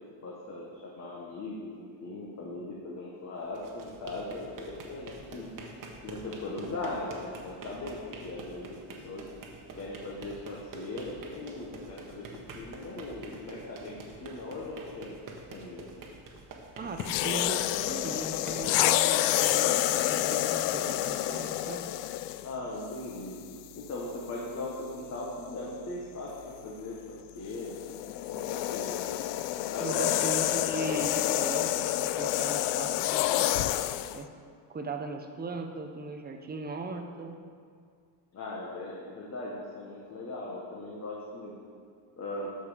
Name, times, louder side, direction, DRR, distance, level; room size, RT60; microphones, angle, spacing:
voice 1, 0.2-5.5 6.0-9.3 9.7-15.2 15.5-15.9 22.4-23.4 23.8-27.8 28.3-29.1 29.7-30.3 38.3-41.6 42.2-42.5, left 2 dB, 35° left, -4 dB, 1.5 m, -39 dB
sound 1, 3.4-20.4, right 3 dB, 45° right, 1.4 m, -47 dB
voice 2, 16.8-21.8 29.8-33.5 34.1-34.3 34.7-37.4, right 3 dB, 20° right, 4 dB, 0.8 m, -38 dB
sound 2, 17.0-22.5 23.3-23.5 27.5-34.2, left 14 dB, 75° left, 0.5 m, -28 dB
13.5 x 5.4 x 5.1 m, 2.1 s
cardioid pair, 140°, 44 cm